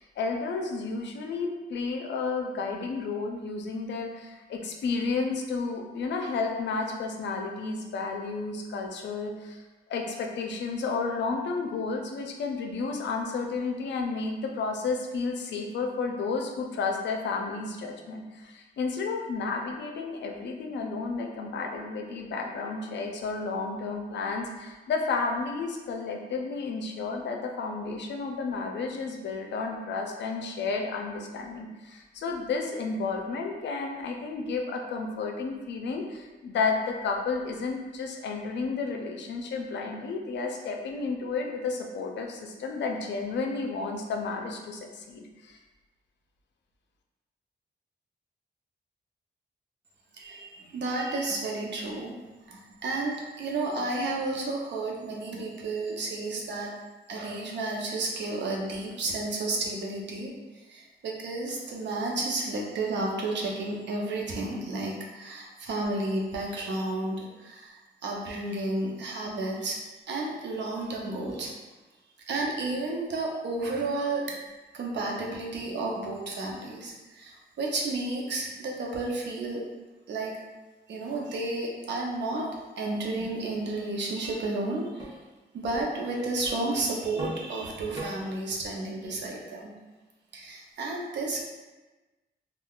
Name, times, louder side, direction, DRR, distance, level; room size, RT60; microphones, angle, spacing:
voice 1, 0.0-9.6 9.9-45.6, left 4 dB, 85° left, 2 dB, 0.5 m, -32 dB
voice 2, 50.2-52.1 52.5-56.7 57.1-60.3 60.7-69.8 70.1-71.5 72.3-74.3 74.7-79.6 80.1-80.4 80.9-82.5 82.8-85.2 85.5-89.7 90.3-91.4, right 2 dB, 80° right, -1 dB, 0.6 m, -32 dB
sound 1, 84.2-84.4 85.0-85.1 85.7-85.8 86.4-86.6 87.2-87.4 88.0-88.1, right 2 dB, 20° right, 0.9 m, -37 dB
3.5 x 2.3 x 2.3 m, 1.2 s
wide cardioid pair, 110°, 18 cm